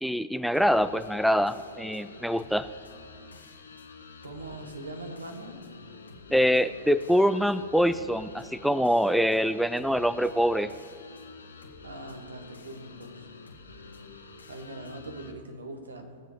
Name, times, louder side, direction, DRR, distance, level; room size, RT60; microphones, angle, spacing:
voice 1, 0.0-2.7 6.3-10.7, equal, ahead, 14 dB, 0.4 m, -24 dB
sound 1, 0.5-15.3, left 4 dB, 85° left, 1.4 m, -48 dB
voice 2, 4.2-5.6 11.8-13.3 14.5-16.2, right 2 dB, 80° right, 5 dB, 1.7 m, -41 dB
19.5 x 7.5 x 5.1 m, 2.2 s
figure-of-eight pair, 105°, 0 cm